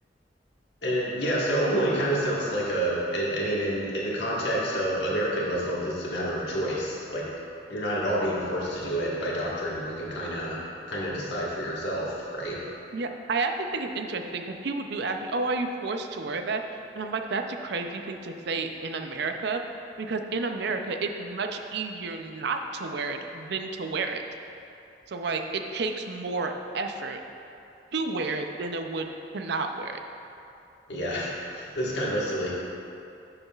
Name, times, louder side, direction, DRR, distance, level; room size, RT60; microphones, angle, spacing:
voice 1, 0.8-7.3 7.7-10.6 10.9-12.6 30.9-32.5, equal, 70° left, -5 dB, 1.6 m, -28 dB
voice 2, 12.9-16.6 16.9-19.6 20.0-24.2 25.1-27.2 27.9-30.0, right 3 dB, 65° right, 5 dB, 0.5 m, -31 dB
11.0 x 6.9 x 2.4 m, 2.7 s
head